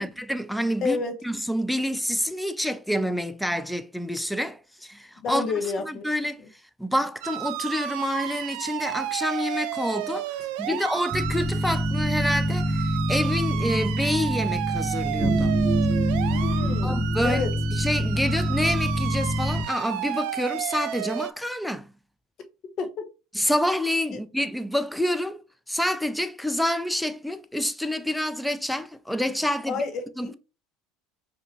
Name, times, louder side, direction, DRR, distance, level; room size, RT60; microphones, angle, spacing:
voice 1, 0.0-1.0 1.2-5.5 5.8-6.4 6.8-15.5 16.7-17.4 17.7-21.9 23.3-25.4 25.7-29.8 30.2-30.3, equal, ahead, 0.5 m, -28 dB
voice 2, 0.8-1.2 5.2-6.5 10.4-10.8 16.3-17.5 22.8-22.9 24.1-24.2 29.7-30.3, left 4 dB, 50° left, 1.0 m, -30 dB
sound 1, 7.2-21.3, right 13 dB, 70° right, 0.3 m, -33 dB
sound 2, 11.1-19.6, right 1 dB, 30° right, 1.3 m, -25 dB
4.9 x 2.8 x 3.0 m
hypercardioid pair, 75°, 0 cm